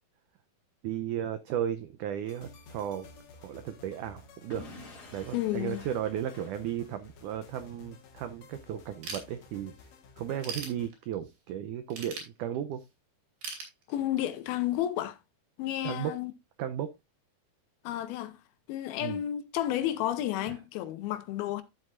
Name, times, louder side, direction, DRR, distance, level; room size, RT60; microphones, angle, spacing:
voice 1, 0.8-3.1 3.4-4.7 5.1-9.7 10.2-12.8 15.8-16.1 16.6-16.9 19.0-19.2 20.5-20.6, right 10 dB, 85° right, 1.8 m, -35 dB
sound 1, 2.3-10.9, left 4 dB, 55° left, 2.4 m, -54 dB
Explosion / Shatter, 4.5-7.3, left 3 dB, 40° left, 2.6 m, -50 dB
voice 2, 5.3-5.8 13.9-15.2 15.6-16.3 17.8-18.4 18.7-21.6, left 13 dB, 80° left, 2.6 m, -31 dB
Ratchet pawl / Tools, 9.0-9.8 10.2-11.3 11.9-12.9 13.4-14.4, right 5 dB, 65° right, 4.6 m, -40 dB
12.0 x 7.6 x 2.5 m
omnidirectional pair, 4.5 m